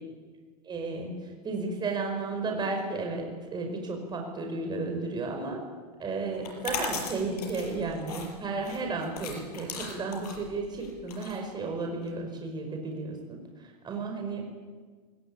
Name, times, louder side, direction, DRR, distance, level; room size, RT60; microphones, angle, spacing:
voice 1, 0.6-3.2 3.5-5.6 6.0-14.5, right 3 dB, 20° right, 2 dB, 5.0 m, -33 dB
sound 1, 6.3-12.1, left 5 dB, 75° left, 6.4 m, -38 dB
20.5 x 19.5 x 8.7 m, 1.5 s
hypercardioid pair, 120°, 20 cm